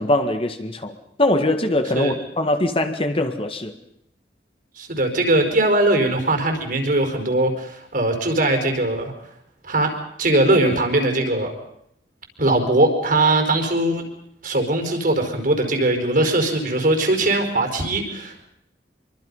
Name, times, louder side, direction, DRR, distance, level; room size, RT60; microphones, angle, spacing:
voice 1, 0.0-3.7, left 1 dB, 35° left, 7 dB, 1.8 m, -22 dB
voice 2, 4.8-9.1 9.6-11.5 12.4-14.1 14.4-18.3, right 2 dB, 55° right, 4 dB, 4.9 m, -20 dB
25.5 x 24.0 x 5.6 m, 0.74 s
head